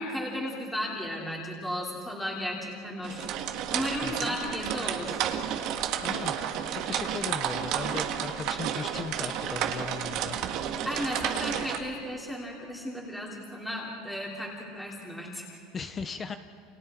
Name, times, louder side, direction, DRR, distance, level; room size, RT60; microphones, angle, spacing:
voice 1, 0.0-5.2 10.8-15.6, equal, 5° left, -3 dB, 3.4 m, -35 dB
sound 1, 3.0-11.8, right 9 dB, 45° right, 1.6 m, -31 dB
voice 2, 4.0-4.4 6.0-6.3 6.7-10.4 15.7-16.4, left 5 dB, 20° left, 9 dB, 0.8 m, -37 dB
29.5 x 29.0 x 4.5 m, 2.3 s
supercardioid pair, 155°, 0 cm